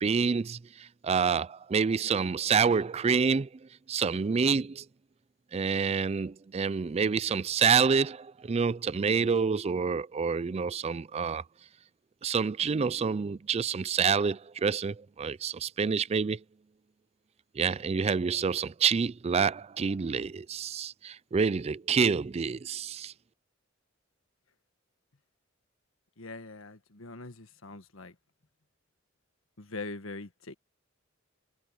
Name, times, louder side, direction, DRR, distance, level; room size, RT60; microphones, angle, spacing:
voice 1, 0.0-3.5 3.9-4.8 5.5-11.4 12.2-16.4 17.6-23.1, right 5 dB, 30° right, 0.4 m, -27 dB
voice 2, 26.2-28.1 29.6-30.5, left 3 dB, 85° left, 1.6 m, -42 dB
head